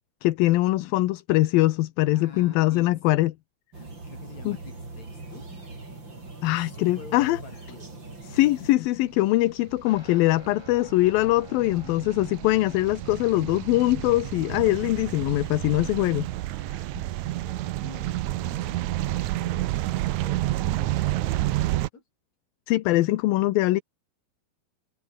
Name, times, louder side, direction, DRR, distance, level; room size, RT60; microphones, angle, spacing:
voice 1, 0.2-3.3 4.5-4.6 6.4-7.4 8.3-16.3 22.7-23.8, left 17 dB, 75° left, 2.6 m, -22 dB
voice 2, 2.1-3.0 4.1-5.5 6.4-7.9 17.2-22.0, left 4 dB, 45° left, 6.5 m, -48 dB
sound 1, 3.7-8.7, right 3 dB, 30° right, 6.4 m, -41 dB
sound 2, 9.0-21.9, right 16 dB, 80° right, 1.7 m, -30 dB
Guitar, 9.9-18.7, left 1 dB, 5° left, 5.5 m, -51 dB
omnidirectional pair, 4.3 m